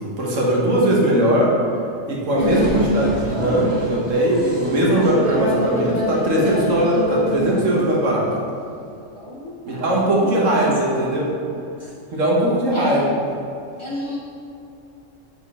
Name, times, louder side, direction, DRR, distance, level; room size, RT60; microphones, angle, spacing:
voice 1, 0.0-1.5 2.1-8.3 9.7-11.3 12.1-13.1, right 1 dB, 75° right, -4 dB, 1.5 m, -19 dB
sound 1, 2.4-7.9, equal, 25° right, 1.0 m, -25 dB
voice 2, 9.1-11.2 11.8-11.9 12.7-13.1 13.8-14.2, left 1 dB, 25° left, -7 dB, 1.1 m, -34 dB
7.5 x 3.9 x 3.6 m, 2.6 s
omnidirectional pair, 1.3 m